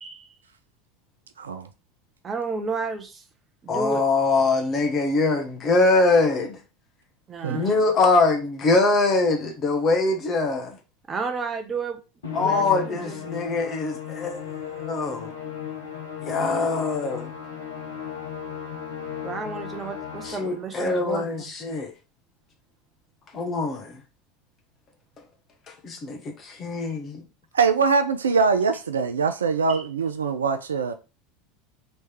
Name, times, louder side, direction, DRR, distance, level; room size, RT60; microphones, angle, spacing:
voice 1, 1.4-1.7 7.4-7.6 27.5-30.9, right 5 dB, 75° right, 0.4 m, -23 dB
voice 2, 2.2-3.2 3.6-4.0 7.3-7.8 11.1-12.0 12.4-13.1 19.2-21.5 29.7-29.9, right 4 dB, 25° right, 0.8 m, -32 dB
voice 3, 3.7-6.6 7.5-10.8 12.3-15.3 16.2-17.3 20.2-21.9 23.3-24.0 25.7-27.2, left 3 dB, 30° left, 1.1 m, -23 dB
Musical instrument, 12.2-20.7, left 8 dB, 70° left, 1.0 m, -36 dB
3.3 x 3.2 x 4.4 m
figure-of-eight pair, 75°, 0 cm